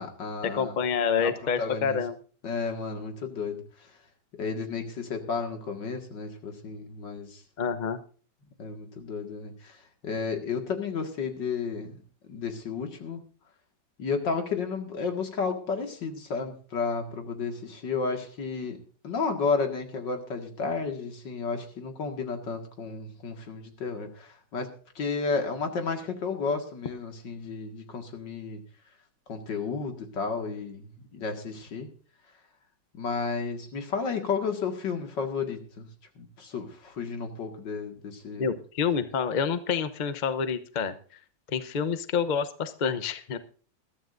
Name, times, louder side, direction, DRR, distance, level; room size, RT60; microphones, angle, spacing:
voice 1, 0.0-0.8 1.2-1.3 1.6-2.0 2.4-3.6 4.4-7.4 8.6-9.8 10.0-12.0 12.3-13.2 14.0-18.8 19.0-24.7 25.0-28.6 29.3-30.9 31.1-31.9 33.0-35.9 36.2-38.5, left 5 dB, 65° left, 5 dB, 2.5 m, -32 dB
voice 2, 0.5-2.2 7.6-8.0 38.4-40.9 41.5-43.4, left 6 dB, 50° left, 12 dB, 0.5 m, -28 dB
21.0 x 13.0 x 2.6 m, 0.41 s
omnidirectional pair, 2.1 m